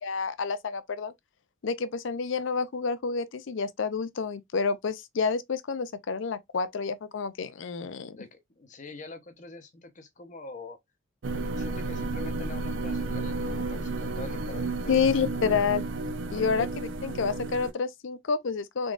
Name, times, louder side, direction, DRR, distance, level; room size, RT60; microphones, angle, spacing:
voice 1, 0.0-1.1 1.6-8.2 14.9-15.8 16.3-16.7 17.0-18.9, left 5 dB, 65° left, 0.5 m, -29 dB
voice 2, 8.1-10.8 11.3-15.1 16.3-16.7, left 2 dB, 35° left, 0.7 m, -44 dB
sound 1, 11.2-17.7, right 2 dB, 65° right, 0.5 m, -32 dB
3.8 x 3.6 x 2.4 m
head